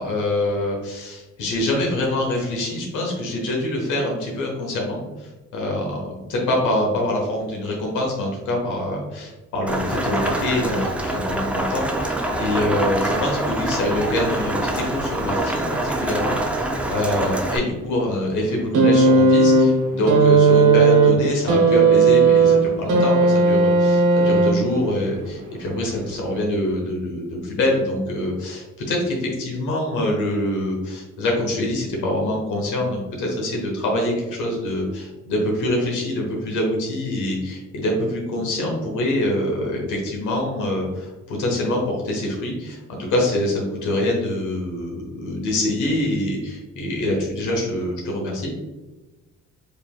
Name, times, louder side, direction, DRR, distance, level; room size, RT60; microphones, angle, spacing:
voice 1, 0.0-48.5, left 1 dB, 80° left, -1 dB, 1.0 m, -25 dB
Rain, 9.7-17.6, right 1 dB, 5° right, 0.5 m, -25 dB
sound 1, 18.7-24.9 26.0-26.1, right 3 dB, 85° right, 0.9 m, -15 dB
5.1 x 2.9 x 2.3 m, 1.1 s
cardioid pair, 90°, 30 cm